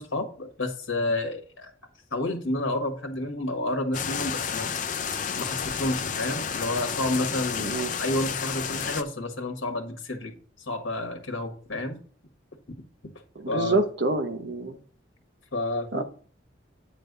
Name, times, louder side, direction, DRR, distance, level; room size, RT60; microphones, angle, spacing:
voice 1, 0.0-1.7 2.1-4.7 5.3-10.3 10.7-12.0 13.5-13.8 15.5-16.0, left 2 dB, 75° left, 1.6 m, -30 dB
sound 1, 3.9-9.0, left 6 dB, 40° left, 0.5 m, -31 dB
voice 2, 7.6-7.9 13.4-14.8 15.9-16.0, right 2 dB, 55° right, 0.9 m, -27 dB
8.9 x 3.4 x 6.6 m
head